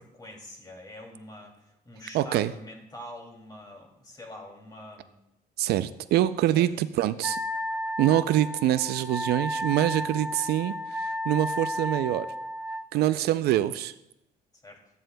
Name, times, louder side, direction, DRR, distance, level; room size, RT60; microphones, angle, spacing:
voice 1, 0.0-5.1 6.5-6.7 10.0-10.3 12.9-13.3 14.6-14.8, left 1 dB, 25° left, 1 dB, 2.6 m, -45 dB
voice 2, 2.1-2.5 5.6-7.4 8.0-12.3 12.9-13.9, right 13 dB, 75° right, 14 dB, 0.4 m, -25 dB
Wind instrument woodwind instrument, 7.2-12.9, equal, 10° right, 0.4 m, -33 dB
13.5 x 9.2 x 2.2 m, 0.88 s
cardioid pair, 110°, 17 cm